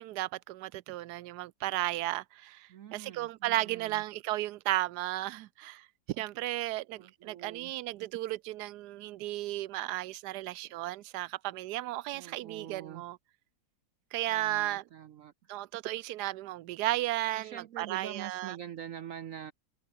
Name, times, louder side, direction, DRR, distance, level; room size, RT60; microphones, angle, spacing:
voice 1, 0.0-13.2 14.1-14.8 15.5-18.6, right 16 dB, 85° right, 1.2 m, -34 dB
voice 2, 2.7-4.0 6.9-7.7 12.1-13.0 14.3-15.3 17.3-19.5, right 10 dB, 60° right, 1.0 m, -45 dB
omnidirectional pair, 1.7 m